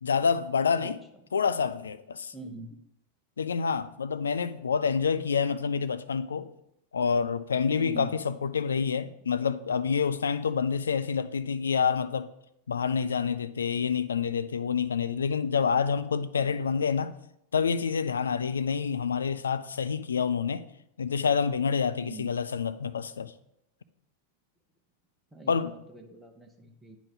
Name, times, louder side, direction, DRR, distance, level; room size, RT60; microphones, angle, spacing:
voice 1, 0.0-1.0 1.3-2.3 3.4-6.5 6.9-12.3 12.7-17.1 17.5-20.7 21.0-23.3 25.5-25.7, left 6 dB, 70° left, 0.4 m, -27 dB
voice 2, 2.3-2.8 7.7-8.1 21.9-22.3 25.3-27.0, right 3 dB, 5° right, 0.9 m, -43 dB
8.8 x 5.1 x 4.0 m
figure-of-eight pair, 90°, 0 cm